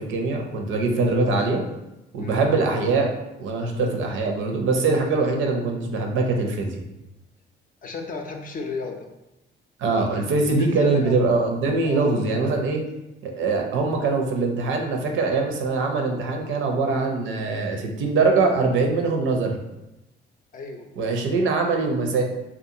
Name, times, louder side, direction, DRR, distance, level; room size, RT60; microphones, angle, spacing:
voice 1, 0.0-1.6 2.1-3.1 3.4-6.8 9.8-12.8 13.2-19.6 21.0-22.2, right 3 dB, 80° right, 3 dB, 0.5 m, -23 dB
voice 2, 7.8-9.1 10.1-11.2 11.8-12.1 20.5-20.9, left 3 dB, 45° left, 3 dB, 0.5 m, -34 dB
2.6 x 2.3 x 2.7 m, 0.95 s
cardioid pair, 90°, 20 cm